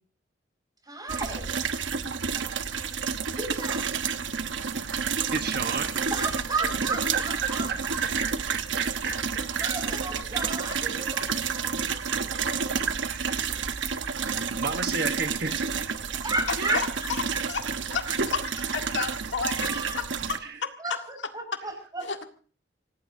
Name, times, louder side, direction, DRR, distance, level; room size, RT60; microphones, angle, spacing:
voice 1, 0.8-1.5 3.4-3.9 6.1-8.3 9.1-9.2 9.6-12.7 16.1-17.1 17.6-17.7 18.0-18.2 19.0-19.1 19.4-20.0 20.8-22.1, right 2 dB, 20° right, 5 dB, 5.4 m, -34 dB
sound 1, 1.1-20.4, right 6 dB, 85° right, 1.1 m, -30 dB
voice 2, 5.3-6.0 7.1-9.7 12.7-13.6 14.1-15.7 16.6-16.8 20.4-20.6, right 5 dB, 55° right, 6 dB, 1.2 m, -33 dB
voice 3, 18.3-19.7 20.6-20.7 22.0-22.3, left 5 dB, 75° left, 5 dB, 1.8 m, -30 dB
26.5 x 17.5 x 2.7 m, 0.42 s
head